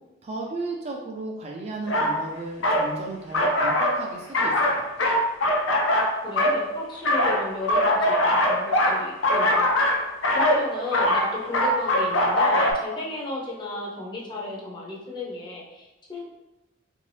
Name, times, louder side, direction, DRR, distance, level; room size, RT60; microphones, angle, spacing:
voice 1, 0.2-4.9, right 2 dB, 30° right, 0 dB, 0.4 m, -35 dB
sound 1, 1.9-2.1 2.6-2.9 3.3-4.0 4.3-6.6 7.1-12.7, left 1 dB, 75° left, 0.5 m, -21 dB
voice 2, 6.2-9.7 10.3-16.3, left 2 dB, 25° left, -4 dB, 0.6 m, -34 dB
3.0 x 2.7 x 3.2 m, 1.0 s
head